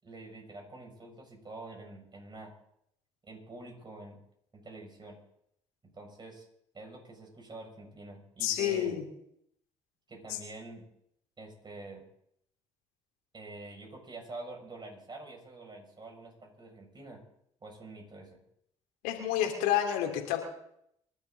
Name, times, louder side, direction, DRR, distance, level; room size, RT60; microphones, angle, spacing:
voice 1, 0.0-2.5 3.2-4.2 4.5-5.2 5.9-6.5 6.7-9.0 10.1-10.8 11.4-12.1 13.3-17.2 17.6-18.4, right 2 dB, 30° right, 1 dB, 6.9 m, -47 dB
voice 2, 8.4-9.0 10.3-10.4 19.0-20.4, left 11 dB, 80° left, 3 dB, 3.1 m, -29 dB
26.0 x 12.0 x 4.1 m, 0.74 s
hypercardioid pair, 60°, 14 cm